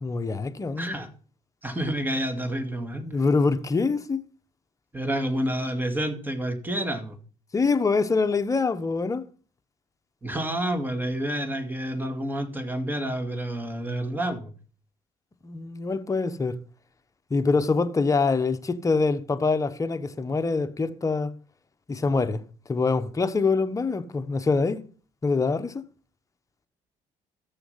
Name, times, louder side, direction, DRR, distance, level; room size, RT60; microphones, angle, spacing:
voice 1, 0.0-1.0 3.0-4.2 7.5-9.2 15.4-16.6 17.3-21.3 21.9-22.4 22.7-24.8 25.2-25.8, left 4 dB, 25° left, 1.0 m, -24 dB
voice 2, 0.8-1.1 1.6-3.0 4.9-7.2 10.2-14.5, right 1 dB, 15° right, 2.3 m, -29 dB
14.0 x 7.0 x 5.7 m
cardioid pair, 95°, 13 cm